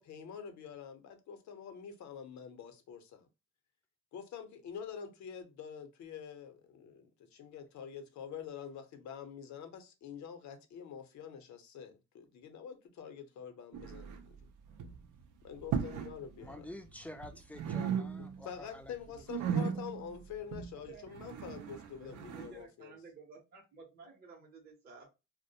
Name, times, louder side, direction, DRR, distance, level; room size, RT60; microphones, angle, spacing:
voice 1, 0.0-3.3 4.1-14.4 15.4-16.6 18.2-22.9, left 8 dB, 65° left, 0.7 m, -46 dB
sound 1, 13.7-14.4 14.7-15.1 15.6-16.2 16.4-17.3 17.5-18.5 18.8-22.5, right 7 dB, 75° right, 0.5 m, -37 dB
voice 2, 16.4-19.3 19.7-19.8, left 1 dB, 5° left, 0.4 m, -49 dB
voice 3, 22.3-25.1, right 5 dB, 35° right, 0.7 m, -53 dB
2.4 x 2.1 x 2.7 m
cardioid pair, 90°, 30 cm